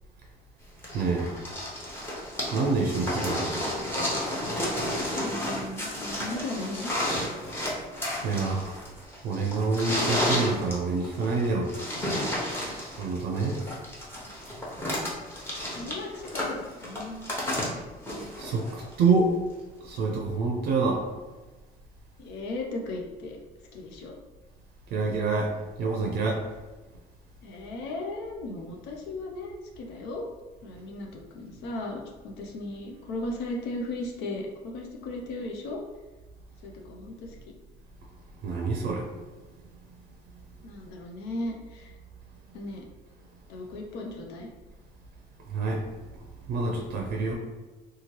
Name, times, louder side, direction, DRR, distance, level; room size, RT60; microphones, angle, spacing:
sound 1, 0.8-18.9 20.0-20.1, left 1 dB, 15° left, 0.8 m, -32 dB
voice 1, 0.9-1.4 2.5-3.6 8.2-8.8 9.2-11.7 13.0-13.6 18.4-19.3 19.8-21.0 24.9-25.5 25.8-26.5 38.4-39.1 45.5-45.8 46.1-47.3, right 4 dB, 75° right, 1 dB, 0.5 m, -27 dB
voice 2, 5.2-6.9 15.7-17.3 22.2-23.4 23.7-24.1 27.4-30.3 30.6-35.8 36.6-37.4 40.6-41.9 42.5-42.9 43.5-44.5, left 2 dB, 85° left, 0 dB, 0.5 m, -36 dB
2.9 x 2.3 x 3.0 m, 1.2 s
cardioid pair, 110°, 17 cm